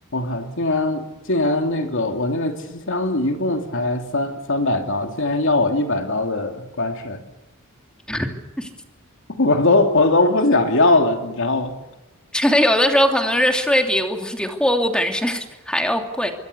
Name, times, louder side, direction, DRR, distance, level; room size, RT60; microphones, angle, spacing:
voice 1, 0.1-7.2 9.3-11.7, left 2 dB, 60° left, 5 dB, 2.9 m, -20 dB
voice 2, 8.1-8.7 12.3-16.3, equal, 5° left, 4 dB, 2.8 m, -20 dB
25.5 x 23.0 x 7.0 m, 1.0 s
head